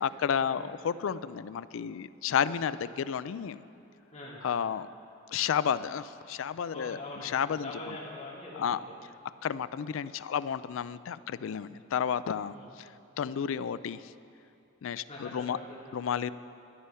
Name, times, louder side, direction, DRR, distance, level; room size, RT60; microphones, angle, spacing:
voice 1, 0.0-3.6 4.4-4.9 5.3-8.0 8.5-8.8 9.4-12.9 13.2-14.0 14.8-15.6 15.9-16.3, left 8 dB, 70° left, 16 dB, 0.3 m, -31 dB
voice 2, 4.1-4.4 6.7-7.4 7.6-8.9 12.5-12.7 15.1-16.0, left 2 dB, 30° left, -6 dB, 2.5 m, -43 dB
12.5 x 9.8 x 5.6 m, 2.7 s
head